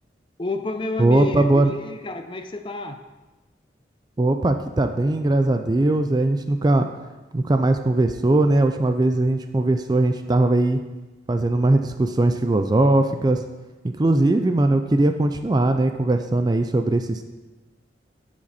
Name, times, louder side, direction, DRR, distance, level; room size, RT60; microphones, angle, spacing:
voice 1, 0.4-3.0, left 2 dB, 25° left, 7 dB, 0.5 m, -29 dB
voice 2, 1.0-1.7 4.2-6.9 7.3-10.8 11.3-13.4 13.8-17.3, right 2 dB, 20° right, 7 dB, 0.4 m, -20 dB
12.0 x 6.0 x 4.1 m, 1.2 s
head